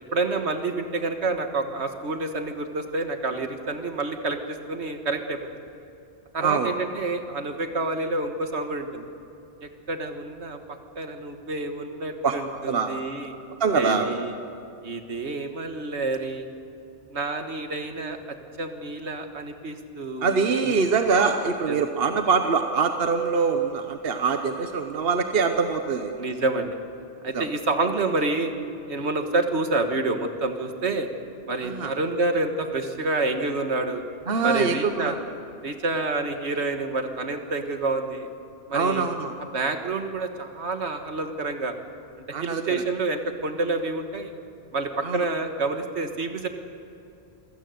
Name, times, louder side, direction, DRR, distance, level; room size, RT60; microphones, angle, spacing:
voice 1, 0.1-5.4 6.3-9.1 9.6-10.6 11.0-13.3 13.7-14.4 14.8-16.5 17.1-20.8 21.7-21.8 26.2-26.8 27.2-28.5 28.9-31.1 31.5-34.0 34.4-35.1 35.6-38.3 38.7-39.1 39.5-41.7 42.2-44.3 44.7-46.5, right 3 dB, 75° right, 6 dB, 1.8 m, -28 dB
voice 2, 6.4-6.7 12.2-12.4 12.7-13.1 13.6-14.1 20.2-26.1 27.3-27.4 31.6-31.9 34.3-35.2 38.7-39.3 42.3-42.6 45.0-45.2, right 5 dB, 60° right, 6 dB, 1.2 m, -24 dB
26.0 x 16.5 x 7.8 m, 2.7 s
omnidirectional pair, 1.1 m